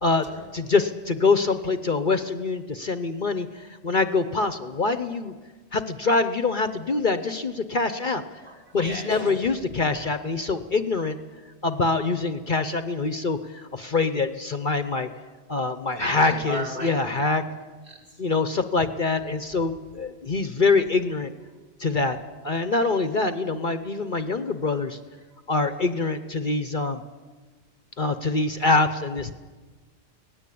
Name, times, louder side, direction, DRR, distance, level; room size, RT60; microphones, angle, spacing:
voice 1, 0.5-3.5 3.8-5.3 5.7-8.2 8.7-11.2 11.6-13.4 13.7-15.1 15.5-17.4 18.2-21.3 21.8-22.2 22.4-25.0 25.5-27.0 28.0-29.3, left 3 dB, 45° left, 10 dB, 1.0 m, -24 dB
voice 2, 8.4-9.2 9.9-10.1 14.9-15.0 15.9-17.3 17.9-18.2 24.4-24.5, right 1 dB, 55° right, -3 dB, 6.6 m, -37 dB
24.0 x 18.5 x 8.6 m, 1.4 s
omnidirectional pair, 1.3 m